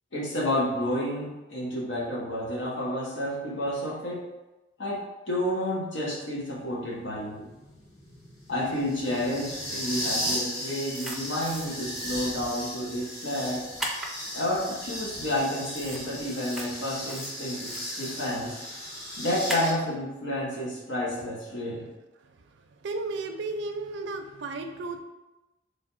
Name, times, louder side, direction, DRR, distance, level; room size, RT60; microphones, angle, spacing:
voice 1, 0.1-4.2 4.8-7.5 8.5-13.6 14.3-18.6 19.2-21.9, left 1 dB, 85° left, -4 dB, 1.2 m, -30 dB
sound 1, 6.6-19.7, equal, 30° left, 1.3 m, -36 dB
sound 2, 10.9-11.7 11.9-12.1 13.8-14.1 15.8-16.0 16.4-16.7 17.1-17.8 19.5-19.7, right 1 dB, ahead, 0.4 m, -35 dB
voice 2, 22.8-25.0, right 3 dB, 70° right, 4 dB, 0.4 m, -33 dB
3.3 x 3.3 x 4.1 m, 1.0 s
head